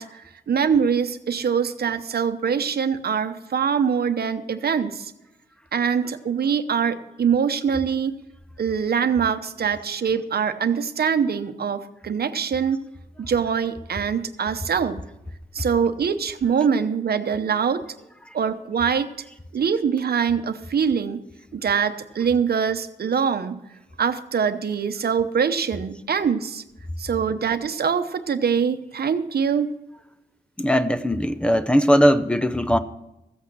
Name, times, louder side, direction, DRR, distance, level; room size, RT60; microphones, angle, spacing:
voice 1, 0.0-5.1 5.7-8.1 8.6-12.8 13.2-15.0 15.5-17.8 18.3-19.1 19.5-21.2 21.5-23.6 24.0-26.6 27.0-29.7, right 7 dB, 70° right, 9 dB, 0.8 m, -23 dB
voice 2, 30.6-32.8, equal, 5° left, 11 dB, 0.6 m, -19 dB
14.5 x 8.3 x 6.2 m, 0.91 s
wide cardioid pair, 160°, 17 cm